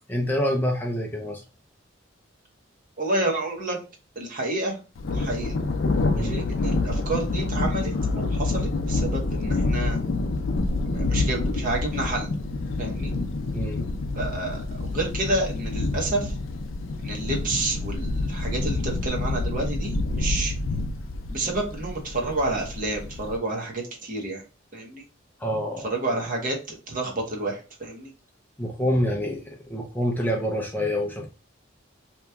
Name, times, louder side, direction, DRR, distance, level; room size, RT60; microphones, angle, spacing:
voice 1, 0.1-1.4 6.1-6.4 13.5-13.8 25.4-25.9 28.6-31.3, equal, 10° left, 0 dB, 0.4 m, -27 dB
voice 2, 3.0-3.8 4.2-4.8 5.1-5.5 6.2-10.0 10.8-12.3 12.8-13.1 14.1-16.3 17.0-20.5 21.3-24.4 24.7-25.0 25.8-28.1, right 2 dB, 45° right, 0 dB, 0.9 m, -29 dB
Thunder, 5.0-23.4, left 2 dB, 75° left, 0.4 m, -27 dB
2.9 x 2.2 x 3.4 m, 0.33 s
head